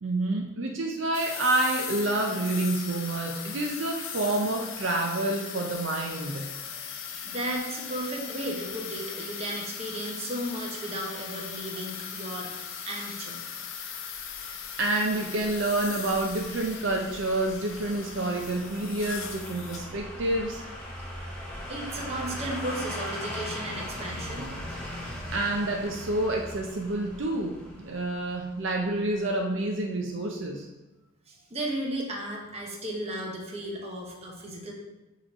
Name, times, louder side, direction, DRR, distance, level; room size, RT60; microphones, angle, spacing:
voice 1, 0.0-6.5 14.8-20.7 25.3-30.7, right 2 dB, 65° right, 1 dB, 0.6 m, -28 dB
sound 1, 1.1-19.8, left 7 dB, 65° left, 0.7 m, -39 dB
voice 2, 6.3-6.8 7.1-13.5 21.7-24.5 31.3-34.7, right 1 dB, 30° right, -1 dB, 1.0 m, -35 dB
sound 2, 14.3-29.3 29.6-29.7, left 1 dB, 5° left, 1.0 m, -40 dB
6.3 x 3.1 x 5.4 m, 1.1 s
head